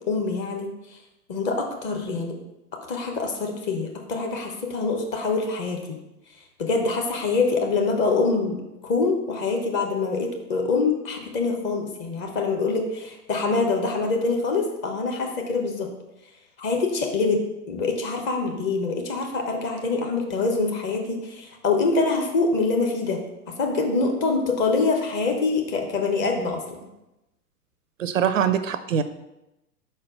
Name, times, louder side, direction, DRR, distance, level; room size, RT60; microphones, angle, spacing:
voice 1, 0.1-0.7 1.3-2.4 2.9-5.8 6.6-8.6 8.8-15.9 16.6-17.4 17.7-23.2 23.6-26.9, left 4 dB, 25° left, 2 dB, 1.0 m, -25 dB
voice 2, 28.0-29.0, right 8 dB, 55° right, 11 dB, 0.5 m, -23 dB
4.8 x 4.5 x 5.9 m, 0.94 s
figure-of-eight pair, 105°, 47 cm